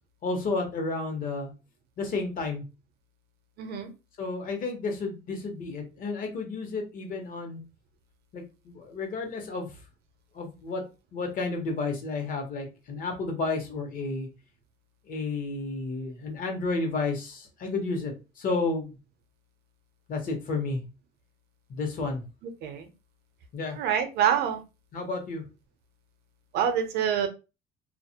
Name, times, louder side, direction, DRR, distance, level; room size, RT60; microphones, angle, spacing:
voice 1, 0.2-1.5 2.0-2.6 4.2-7.6 8.3-9.7 10.3-10.8 11.1-14.3 15.1-19.0 20.1-20.8 21.7-22.2 23.5-23.8 24.9-25.4, left 3 dB, 55° left, 3 dB, 0.9 m, -31 dB
voice 2, 3.6-3.9 22.6-22.8 23.8-24.6 26.5-27.3, right 8 dB, 75° right, 7 dB, 0.6 m, -26 dB
2.4 x 2.0 x 2.8 m, 0.29 s
cardioid pair, 110°, 17 cm